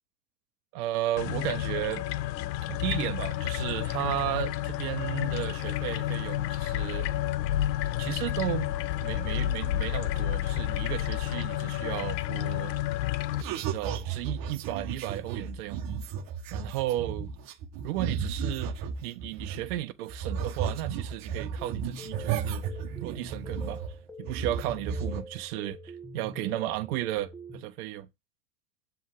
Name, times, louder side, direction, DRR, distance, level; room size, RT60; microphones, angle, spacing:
voice 1, 0.7-2.1 2.7-7.1 8.0-8.7 9.0-12.7 13.5-15.8 16.5-17.3 17.8-22.7 23.0-23.8 24.2-28.1, right 15 dB, 60° right, 1.0 m, -34 dB
sound 1, 1.2-13.4, left 13 dB, 80° left, 0.7 m, -30 dB
sound 2, 13.4-19.8 20.1-24.0 24.3-25.2, right 7 dB, 40° right, 1.4 m, -34 dB
sound 3, 21.6-27.6, equal, 5° left, 1.6 m, -44 dB
7.4 x 3.5 x 4.7 m
hypercardioid pair, 110°, 50 cm